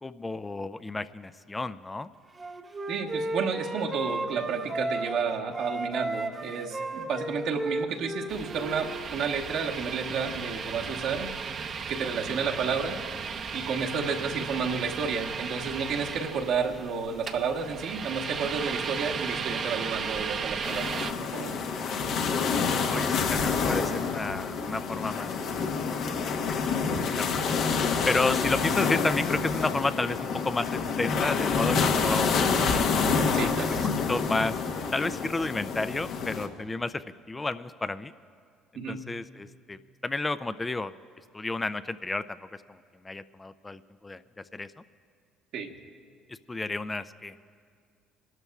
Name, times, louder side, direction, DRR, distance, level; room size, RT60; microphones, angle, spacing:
voice 1, 0.0-2.1 12.3-12.5 22.9-25.3 26.3-27.6 28.1-33.0 34.1-34.6 34.9-38.1 38.7-40.9 41.3-42.8 43.0-44.2 44.5-44.7 46.3-47.4, left 3 dB, 20° left, 14 dB, 0.4 m, -32 dB
Wind instrument woodwind instrument, 2.4-5.3 5.5-9.0, right 2 dB, 25° right, 1.0 m, -33 dB
voice 2, 2.9-11.3 11.9-13.0 13.5-21.6 32.6-32.7 33.3-33.9 38.7-39.0 45.5-45.7, right 5 dB, 65° right, 2 dB, 1.2 m, -31 dB
sound 1, 8.3-21.1, right 6 dB, 50° right, 0.8 m, -35 dB
sound 2, 20.6-36.5, left 5 dB, 65° left, 1.2 m, -27 dB
28.5 x 12.5 x 2.4 m, 2.3 s
supercardioid pair, 75°, 0 cm